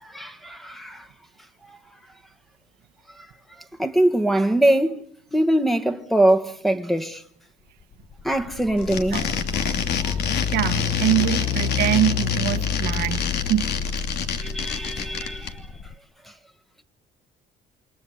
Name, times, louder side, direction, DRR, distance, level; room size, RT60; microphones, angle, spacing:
voice 1, 0.0-1.1 1.7-1.8 3.1-3.3 3.8-5.0 5.3-7.2 8.2-9.2 10.0-10.2 14.4-15.7, right 1 dB, ahead, 1.6 m, -22 dB
sound 1, 7.9-15.9, left 7 dB, 40° left, 1.3 m, -28 dB
sound 2, 8.8-15.5, left 7 dB, 75° left, 2.9 m, -28 dB
voice 2, 10.5-13.7, right 13 dB, 80° right, 1.5 m, -24 dB
28.5 x 23.5 x 8.0 m
cardioid pair, 110°, 17 cm